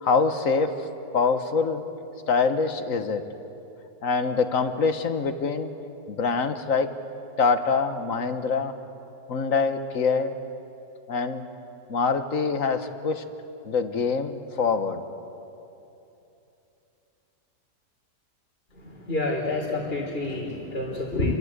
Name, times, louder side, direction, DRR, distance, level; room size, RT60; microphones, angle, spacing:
voice 1, 0.0-0.7 1.1-1.8 2.3-3.2 4.0-5.7 6.1-6.9 7.4-8.7 9.3-10.3 11.1-11.4 11.9-13.2 13.6-15.0, left 4 dB, 55° left, 9 dB, 1.6 m, -24 dB
voice 2, 19.1-21.4, left 2 dB, 35° left, -2 dB, 3.6 m, -28 dB
30.0 x 23.0 x 8.2 m, 2.9 s
omnidirectional pair, 1.8 m